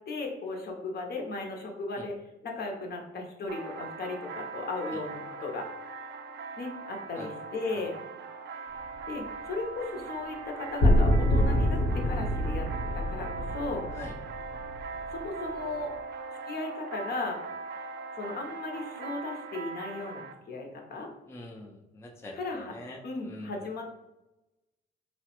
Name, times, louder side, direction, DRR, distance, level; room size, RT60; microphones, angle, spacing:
voice 1, 0.1-2.1 2.4-5.7 6.6-7.9 9.1-12.7 12.9-13.9 15.1-15.9 16.5-17.4 18.1-21.1 22.3-22.7 23.0-23.9, left 3 dB, 55° left, 1 dB, 0.7 m, -36 dB
sound 1, 3.5-20.3, right 4 dB, 60° right, 0.4 m, -40 dB
sound 2, 10.8-15.2, equal, 85° left, 1.0 m, -26 dB
voice 2, 21.3-23.0 23.3-23.5, left 1 dB, 15° left, 0 dB, 0.4 m, -44 dB
3.1 x 2.1 x 2.9 m, 0.96 s
cardioid pair, 90°, 20 cm